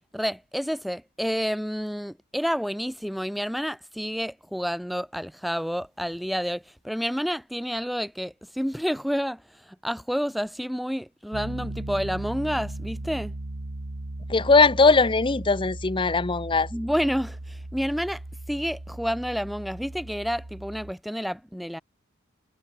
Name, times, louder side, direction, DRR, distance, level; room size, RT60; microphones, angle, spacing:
voice 1, 0.1-9.4 9.8-13.3 16.7-18.2 18.5-21.8, equal, ahead, 1.8 m, -29 dB
Piano, 11.3-20.9, right 1 dB, 75° right, 1.8 m, -37 dB
voice 2, 14.3-16.7, left 4 dB, 25° left, 0.7 m, -20 dB
head